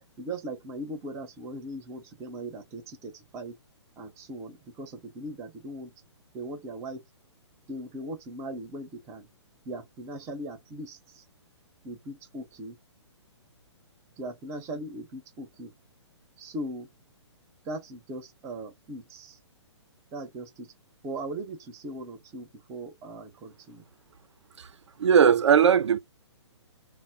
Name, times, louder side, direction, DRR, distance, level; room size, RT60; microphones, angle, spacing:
voice 1, 0.2-3.6 4.0-5.9 6.3-7.0 7.7-9.3 9.6-11.2 11.8-12.8 14.2-15.7 16.4-16.9 17.6-19.4 20.1-20.7 21.0-23.8, right 1 dB, 20° right, 0.7 m, -39 dB
voice 2, 25.0-26.0, right 7 dB, 70° right, 0.4 m, -19 dB
2.1 x 2.0 x 3.7 m
figure-of-eight pair, 125°, 15 cm